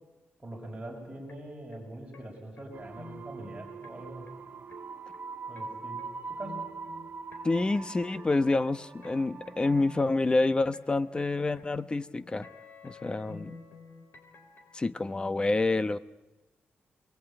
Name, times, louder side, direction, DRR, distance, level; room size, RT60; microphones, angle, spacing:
voice 1, 0.4-4.2 5.5-6.6, right 1 dB, 15° right, -2 dB, 6.6 m, -43 dB
sound 1, 1.3-14.8, left 4 dB, 60° left, 5.2 m, -52 dB
sound 2, 2.7-10.0, right 4 dB, 45° right, 1.0 m, -43 dB
voice 2, 7.4-12.5 12.8-13.6 14.7-16.0, left 2 dB, 20° left, 13 dB, 0.9 m, -28 dB
30.0 x 21.5 x 9.0 m, 1.1 s
cardioid pair, 105°, 4 cm